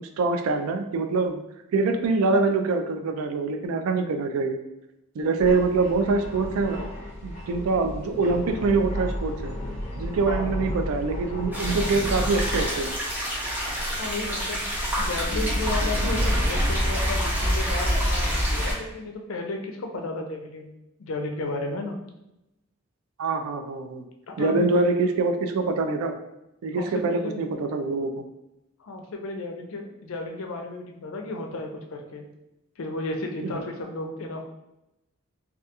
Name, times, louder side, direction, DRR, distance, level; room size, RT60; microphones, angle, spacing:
voice 1, 0.2-1.4 1.7-4.6 5.2-6.8 7.2-9.5 10.0-13.0 23.2-24.0 24.4-26.1 26.6-28.2 33.4-33.5, right 3 dB, 80° right, 6 dB, 0.3 m, -24 dB
sound 1, 5.4-12.7, equal, 30° left, 0.8 m, -33 dB
sound 2, 11.5-18.7, equal, 10° right, 0.4 m, -26 dB
voice 2, 14.0-14.7 15.0-20.7 21.0-22.0 24.3-24.9 26.7-27.4 28.8-32.2 32.8-34.4, left 2 dB, 75° left, 3 dB, 0.4 m, -33 dB
2.3 x 2.2 x 2.8 m, 0.90 s
head